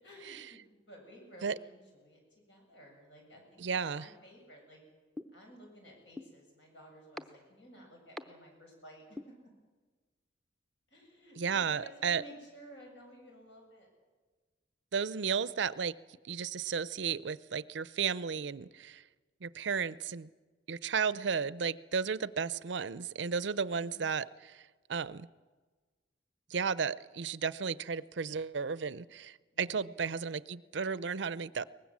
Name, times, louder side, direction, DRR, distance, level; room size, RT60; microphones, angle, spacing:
voice 1, 0.0-4.8 5.3-9.3 10.9-13.9 23.5-24.0 29.5-29.9, equal, 70° left, 1 dB, 7.6 m, -54 dB
voice 2, 3.6-4.1 11.4-12.2 14.9-15.9 16.2-19.0 19.4-20.3 20.7-24.6 24.9-25.3 26.5-31.6, right 6 dB, 75° right, 18 dB, 0.6 m, -34 dB
sound 1, 5.2-5.3 6.2-6.3 7.2-7.3 8.2-8.3 9.2-9.3, left 1 dB, ahead, 0.7 m, -40 dB
23.0 x 19.5 x 7.4 m, 1.4 s
head